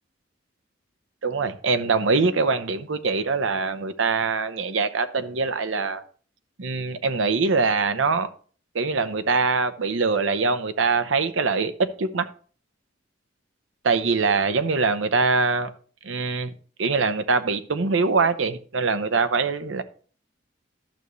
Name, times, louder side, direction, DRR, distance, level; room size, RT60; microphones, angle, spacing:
voice 1, 1.2-6.0 6.6-8.3 8.7-12.3 13.8-15.7 16.0-16.5 16.8-19.8, right 4 dB, 85° right, 0.8 m, -23 dB
12.0 x 6.7 x 3.1 m
head